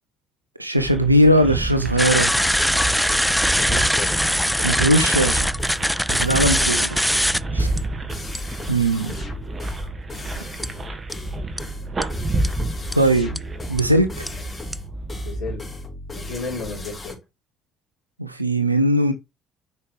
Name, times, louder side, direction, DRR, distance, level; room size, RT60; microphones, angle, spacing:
voice 1, 0.6-2.3 4.6-5.5 6.1-7.0 7.5-7.7 8.7-9.1 13.0-13.4 13.7-14.1 18.2-19.1, right 1 dB, 90° right, 0.6 m, -19 dB
sound 1, 0.8-15.6, right 2 dB, 30° right, 1.6 m, -30 dB
sound 2, 2.0-7.4 7.8-7.9 8.3-8.6 10.6-10.7 11.1-11.2 11.6-11.7 12.0-12.1 12.4-12.5 12.9-13.0 13.4-13.5 13.8-13.9 14.3-14.4 14.7-14.8, equal, ahead, 0.3 m, -21 dB
sound 3, 2.3-17.1, left 2 dB, 25° left, 3.0 m, -36 dB
voice 2, 3.4-4.2 15.2-15.6 16.1-17.2, left 4 dB, 60° left, 3.4 m, -33 dB
7.9 x 5.6 x 3.3 m
figure-of-eight pair, 50°, 0 cm